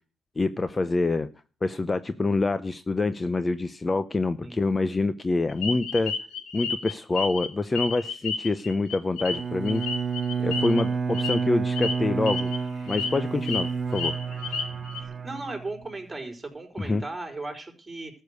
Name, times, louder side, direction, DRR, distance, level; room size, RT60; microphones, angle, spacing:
voice 1, 0.4-1.3 1.6-6.1 6.5-9.8 10.4-12.5 12.9-14.2 16.8-17.0, left 3 dB, 25° left, 12 dB, 0.8 m, -26 dB
sound 1, 5.6-7.5 7.7-10.8 11.1-11.4 11.7-11.9 12.3-12.6 12.9-13.6 13.9-15.0, left 5 dB, 85° left, 3.0 m, -31 dB
Bowed string instrument, 9.3-15.9, right 5 dB, 35° right, 1.0 m, -30 dB
voice 2, 15.0-18.1, right 2 dB, 15° right, 3 dB, 4.9 m, -36 dB
13.5 x 6.7 x 9.5 m, 0.38 s
cardioid pair, 90°, 0 cm